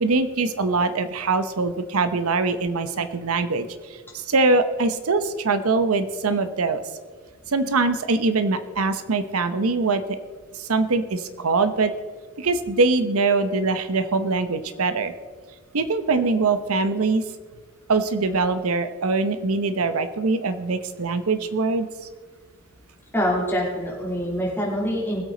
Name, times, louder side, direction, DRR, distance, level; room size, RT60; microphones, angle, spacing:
voice 1, 0.0-6.8 7.5-10.0 10.5-11.9 12.4-15.1 15.7-17.2 17.9-21.9, right 3 dB, 80° right, 11 dB, 0.8 m, -23 dB
voice 2, 23.1-25.2, equal, 10° left, -3 dB, 3.1 m, -25 dB
20.5 x 8.1 x 3.9 m, 1.4 s
head